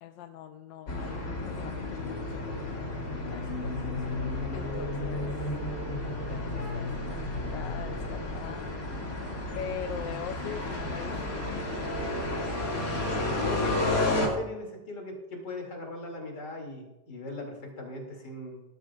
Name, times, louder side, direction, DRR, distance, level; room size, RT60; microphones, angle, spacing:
voice 1, 0.0-2.6 3.1-5.3 6.3-8.7 9.5-11.5, left 9 dB, 90° left, 7 dB, 1.3 m, -42 dB
sound 1, 0.9-14.3, left 2 dB, 50° left, 2.7 m, -32 dB
voice 2, 12.9-18.6, left 2 dB, 65° left, 1 dB, 3.2 m, -38 dB
18.0 x 12.0 x 2.4 m, 0.97 s
omnidirectional pair, 1.9 m